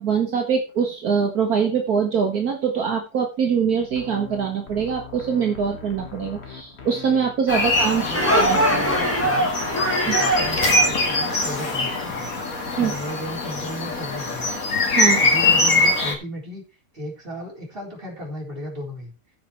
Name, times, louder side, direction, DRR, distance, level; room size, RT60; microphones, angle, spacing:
voice 1, 0.0-8.0 8.3-8.9 10.1-10.2 12.8-12.9 14.8-15.2, right 6 dB, 65° right, 2 dB, 1.8 m, -23 dB
sound 1, 3.8-11.1, left 5 dB, 40° left, 1.8 m, -40 dB
sound 2, 7.5-16.1, left 2 dB, 55° left, 2.4 m, -23 dB
voice 2, 7.9-9.5 10.0-12.4 12.8-14.5 15.0-16.6 16.9-19.1, left 1 dB, 30° right, -2 dB, 4.2 m, -35 dB
sound 3, 8.1-11.8, right 1 dB, 10° left, 1.8 m, -23 dB
15.0 x 5.5 x 4.5 m, 0.31 s
omnidirectional pair, 1.8 m